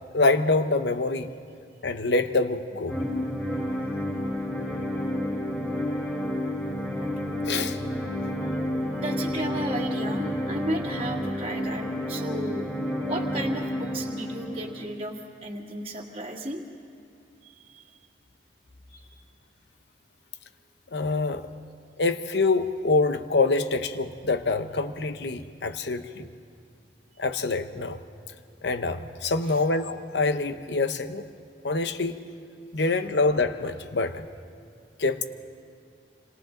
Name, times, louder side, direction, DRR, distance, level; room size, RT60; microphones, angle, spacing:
voice 1, 0.1-1.3 1.8-2.9 7.4-7.8 20.9-21.4 22.0-26.3 27.2-28.0 28.6-31.2 31.6-32.2 32.7-34.3 35.0-35.3, left 3 dB, 70° left, 9 dB, 1.0 m, -25 dB
sound 1, 2.9-14.8, equal, ahead, 3.8 m, -30 dB
voice 2, 9.0-12.7 13.0-16.6 17.7-17.8 18.9-19.1 29.5-29.6, right 1 dB, 35° right, -2 dB, 2.0 m, -34 dB
28.5 x 26.0 x 3.9 m, 2.5 s
head